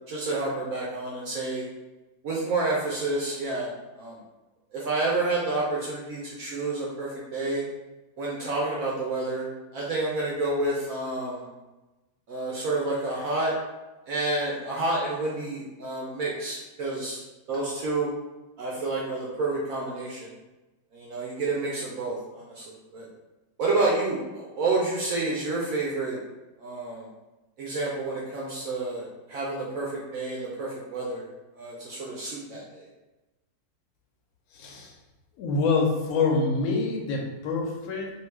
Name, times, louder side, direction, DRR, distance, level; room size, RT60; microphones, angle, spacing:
voice 1, 0.1-1.7 2.2-3.7 4.0-4.2 4.7-7.6 8.2-9.5 9.7-11.5 12.3-13.5 14.1-17.2 17.5-18.1 18.6-20.3 20.9-22.7 22.9-23.1 23.6-26.2 26.6-27.1 27.6-31.3 31.5-32.9, right 2 dB, 70° right, -4 dB, 0.8 m, -29 dB
voice 2, 34.5-34.9 35.4-38.1, left 4 dB, 70° left, 0 dB, 0.9 m, -26 dB
2.8 x 2.3 x 3.2 m, 1.1 s
omnidirectional pair, 1.9 m